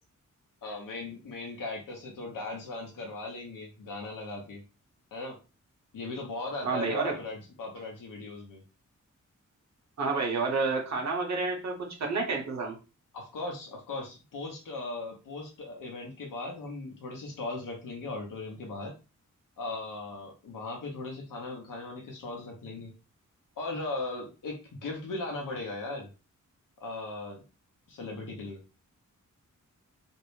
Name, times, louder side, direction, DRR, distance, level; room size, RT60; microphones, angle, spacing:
voice 1, 0.6-4.6 5.1-5.4 5.9-8.6 13.1-18.9 19.6-22.9 23.6-26.1 26.8-27.4 27.9-28.6, left 2 dB, 85° left, 0 dB, 0.7 m, -38 dB
voice 2, 6.6-7.2 10.0-12.7, right 4 dB, 60° right, 1 dB, 0.8 m, -29 dB
2.6 x 2.0 x 3.0 m, 0.32 s
wide cardioid pair, 150°, 32 cm